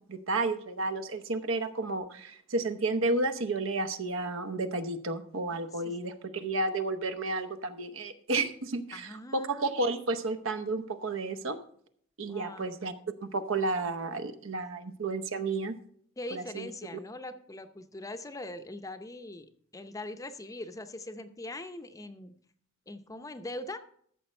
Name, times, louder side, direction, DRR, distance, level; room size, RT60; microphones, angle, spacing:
voice 1, 0.1-11.6 12.2-12.9 13.2-15.8 16.3-16.7, right 2 dB, 70° right, 10 dB, 0.8 m, -32 dB
voice 2, 5.5-5.9 8.9-9.8 12.3-12.8 16.2-22.3 22.9-23.8, left 1 dB, 15° left, 9 dB, 0.6 m, -42 dB
14.0 x 6.5 x 4.3 m, 0.63 s
head